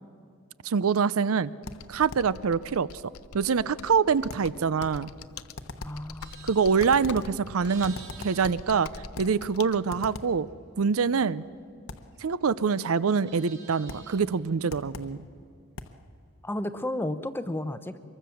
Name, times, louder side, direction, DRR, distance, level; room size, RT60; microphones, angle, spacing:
voice 1, 0.6-1.5 1.9-2.9 3.3-5.1 6.4-8.0 8.2-8.9 9.2-10.5 10.8-11.4 12.2-15.3, right 5 dB, 75° right, 19 dB, 0.5 m, -25 dB
Computer keyboard, 1.6-9.8, left 5 dB, 80° left, 0.7 m, -45 dB
sound 1, 1.7-2.4 4.3-5.1 5.6-6.1 6.8-7.4 7.8-8.7 9.1-9.4 9.9-10.4 11.9-12.2 13.9-14.2 14.7-15.2 15.8-16.0, left 2 dB, 60° left, 1.1 m, -41 dB
voice 2, 5.8-6.5 16.4-18.0, left 1 dB, 10° left, 11 dB, 0.7 m, -32 dB
Livestock farm animals working animals, 5.9-9.6 10.0-12.5 12.8-14.4, right 4 dB, 50° right, 3.7 m, -51 dB
24.5 x 23.0 x 7.0 m, 2.4 s
head